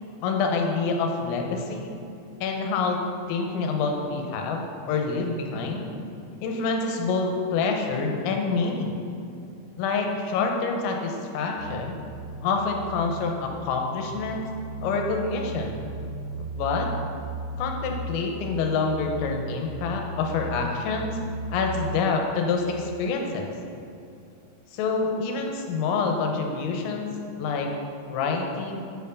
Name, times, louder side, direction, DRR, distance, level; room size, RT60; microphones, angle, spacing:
voice 1, 0.2-1.9 2.4-3.0 3.3-5.9 6.4-8.9 9.8-12.0 12.4-14.5 14.8-15.8 16.5-16.9 17.6-21.2 21.5-23.5 24.7-27.7 28.1-28.8, left 4 dB, 85° left, 2 dB, 3.4 m, -27 dB
sound 1, 11.6-22.1, right 2 dB, 85° right, 3.6 m, -36 dB
8.8 x 4.5 x 6.9 m, 2.7 s
omnidirectional pair, 5.9 m